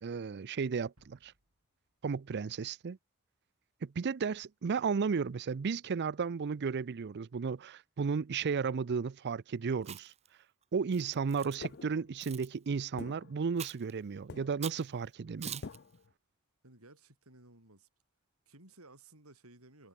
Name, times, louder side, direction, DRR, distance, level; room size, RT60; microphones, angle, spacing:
voice 1, 0.0-1.3 2.0-3.0 3.8-10.1 10.7-15.6, right 5 dB, 50° right, 0.5 m, -34 dB
sound 1, 1.0-3.0, right 1 dB, 70° right, 5.4 m, -73 dB
Chewing mastication, 9.8-10.3 10.9-11.6 12.2-12.5 13.6-13.9 14.6-14.9 15.4-15.8, right 9 dB, 30° right, 0.8 m, -43 dB
sound 2, 11.6-12.4 13.0-14.0 14.3-14.9 15.6-16.1, left 4 dB, 50° left, 0.6 m, -47 dB
voice 2, 16.6-17.9 18.5-19.9, right 2 dB, 85° right, 7.8 m, -57 dB
head